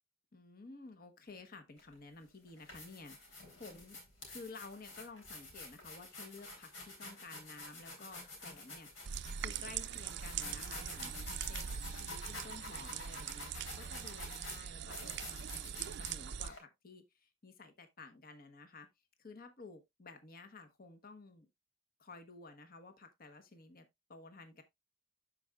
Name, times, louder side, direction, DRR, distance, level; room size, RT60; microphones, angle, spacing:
voice 1, 0.3-4.0 4.3-9.1 9.4-18.9 19.2-21.5 22.0-24.6, left 3 dB, 50° left, 1.1 m, -53 dB
sound 1, 1.8-1.9 2.5-16.6, left 2 dB, 75° left, 3.5 m, -49 dB
sound 2, 9.1-16.5, right 8 dB, 60° right, 0.4 m, -42 dB
12.0 x 4.9 x 2.4 m
head